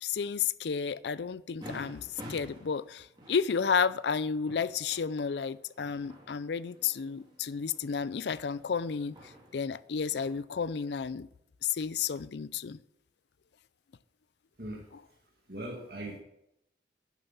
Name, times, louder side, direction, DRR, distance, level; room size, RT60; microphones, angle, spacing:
voice 1, 0.0-11.3 11.6-12.8, left 6 dB, 80° left, 0.4 m, -32 dB
sound 1, 1.6-10.4, equal, 25° right, 3.1 m, -51 dB
voice 2, 15.5-16.2, right 1 dB, 60° right, 1.9 m, -39 dB
11.0 x 7.3 x 5.9 m
head